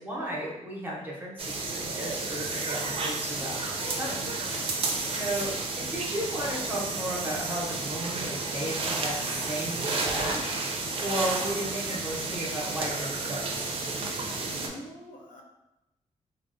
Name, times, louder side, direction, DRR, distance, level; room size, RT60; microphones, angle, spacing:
voice 1, 0.0-4.7 5.0-13.7, right 1 dB, 15° right, -4 dB, 0.8 m, -35 dB
sound 1, 1.4-14.7, right 3 dB, 45° right, 0.4 m, -31 dB
voice 2, 4.4-4.8 14.1-14.2 14.5-15.4, equal, 80° left, -1 dB, 0.6 m, -47 dB
3.7 x 2.0 x 2.5 m, 0.94 s
cardioid pair, 105°, 13 cm